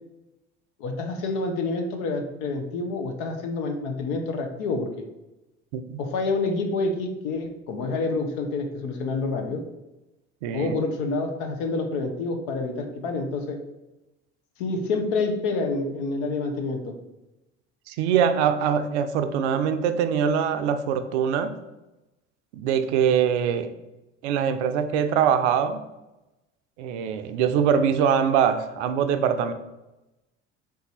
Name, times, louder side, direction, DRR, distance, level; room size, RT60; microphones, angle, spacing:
voice 1, 0.8-5.0 6.0-9.6 10.5-13.6 14.6-16.9, left 3 dB, 65° left, 4 dB, 0.8 m, -28 dB
voice 2, 10.4-10.8 17.9-21.5 22.5-23.7 24.2-25.8 26.8-29.5, right 8 dB, 70° right, 9 dB, 0.5 m, -23 dB
3.6 x 2.7 x 4.1 m, 0.99 s
hypercardioid pair, 65°, 36 cm